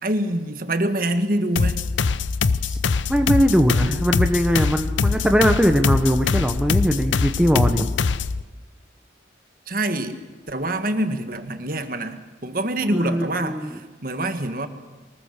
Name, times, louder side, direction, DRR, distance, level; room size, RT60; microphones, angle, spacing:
voice 1, 0.0-1.8 9.7-14.7, right 1 dB, 50° right, 8 dB, 1.5 m, -25 dB
sound 1, 1.6-8.4, left 4 dB, 85° left, 0.7 m, -23 dB
voice 2, 3.1-7.9 12.9-13.8, equal, 5° right, 5 dB, 1.0 m, -20 dB
24.0 x 20.0 x 6.6 m, 1.3 s
head